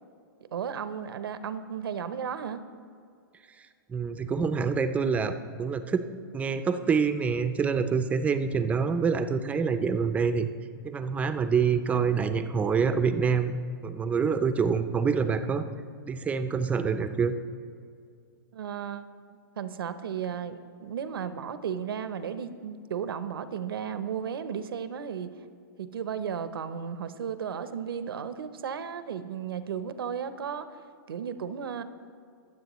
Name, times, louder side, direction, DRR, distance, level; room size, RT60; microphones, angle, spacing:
voice 1, 0.5-2.6 18.5-19.1 19.6-25.3 25.8-30.7 31.1-31.8, right 7 dB, 85° right, 12 dB, 0.8 m, -34 dB
voice 2, 3.9-6.0 6.3-10.5 10.8-15.7 16.1-17.3, right 5 dB, 10° right, 9 dB, 0.5 m, -26 dB
22.0 x 7.5 x 3.1 m, 2.3 s
hypercardioid pair, 140°, 12 cm